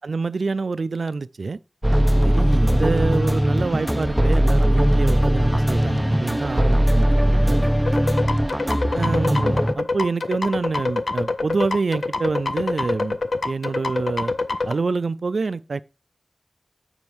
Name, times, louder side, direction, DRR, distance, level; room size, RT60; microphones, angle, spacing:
voice 1, 0.0-1.6 2.2-7.7 8.9-13.2 13.5-14.3 14.6-15.8, right 4 dB, 85° right, 0.3 m, -26 dB
sound 1, 1.8-9.7, equal, 10° right, 0.5 m, -19 dB
sound 2, 7.9-14.7, left 3 dB, 80° left, 0.5 m, -25 dB
7.0 x 5.3 x 4.6 m
wide cardioid pair, 60°, 0 cm